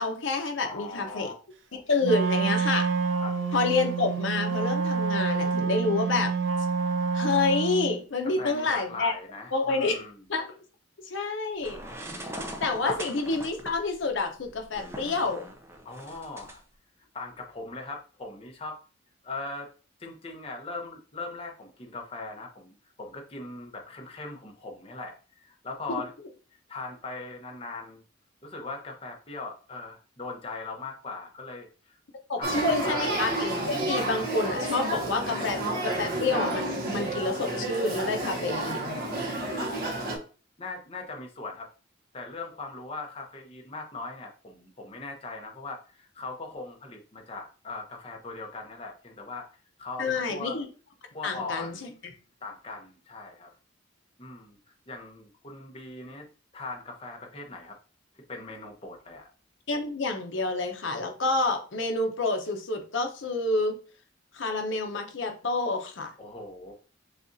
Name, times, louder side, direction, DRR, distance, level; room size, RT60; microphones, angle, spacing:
voice 1, 0.0-1.3 1.7-2.9 3.5-6.3 7.1-9.1 9.5-10.0 10.3-10.5 11.1-11.8 12.2-12.3 12.6-15.4 25.9-26.0 32.3-38.8 50.0-50.7 51.2-51.9 59.7-63.7 64.3-66.1, left 3 dB, 70° left, 4 dB, 0.8 m, -28 dB
voice 2, 0.6-1.3 3.2-3.4 8.2-10.2 12.8-13.0 15.8-16.6 17.1-18.8 19.2-19.7 20.0-25.1 25.4-26.1 26.7-28.0 28.4-32.0 32.4-33.3 39.5-39.7 40.6-41.7 42.1-49.5 49.8-50.6 51.1-51.9 52.4-53.5 54.2-54.6 54.9-56.3 56.5-57.7 58.3-59.3 66.2-66.7, left 3 dB, 30° left, 1 dB, 0.9 m, -39 dB
Wind instrument woodwind instrument, 2.0-8.0, right 5 dB, 65° right, 0.5 m, -27 dB
sound 1, 11.6-16.6, right 1 dB, 15° right, 0.5 m, -41 dB
Male speech man speaking / Child speech kid speaking / Conversation, 32.4-40.2, right 1 dB, 50° right, 1.0 m, -30 dB
6.7 x 2.4 x 2.7 m, 0.37 s
head